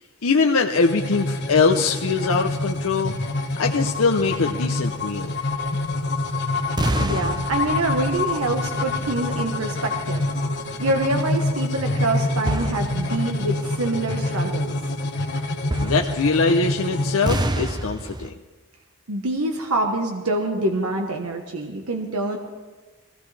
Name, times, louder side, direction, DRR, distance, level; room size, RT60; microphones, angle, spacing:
voice 1, 0.2-3.1 3.6-5.4 15.8-18.3, left 4 dB, 70° left, 3 dB, 0.7 m, -22 dB
sound 1, 0.7-17.4, left 2 dB, 55° left, 1.4 m, -26 dB
sound 2, 6.8-10.5 10.9-11.1 12.4-13.4 13.9-14.0 15.6-16.7 17.3-18.3, right 1 dB, 20° right, 0.6 m, -28 dB
voice 2, 7.0-10.2 10.8-14.7 19.1-22.4, right 2 dB, 85° right, 3 dB, 1.2 m, -26 dB
21.5 x 16.0 x 3.3 m, 1.3 s
head